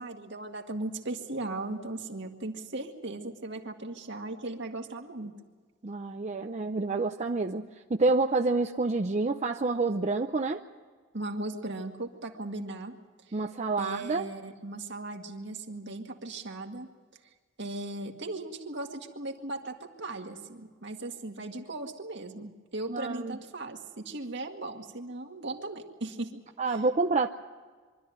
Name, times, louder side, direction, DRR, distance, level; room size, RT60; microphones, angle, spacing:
voice 1, 0.0-5.3 11.1-13.0 13.3-13.4 13.8-16.9 17.6-26.4 26.7-26.8, right 2 dB, 65° right, 3 dB, 1.9 m, -37 dB
voice 2, 5.8-10.6 13.3-14.3 22.9-23.4 26.6-27.3, right 3 dB, 35° right, 5 dB, 0.6 m, -28 dB
24.0 x 13.0 x 9.3 m, 1.5 s
head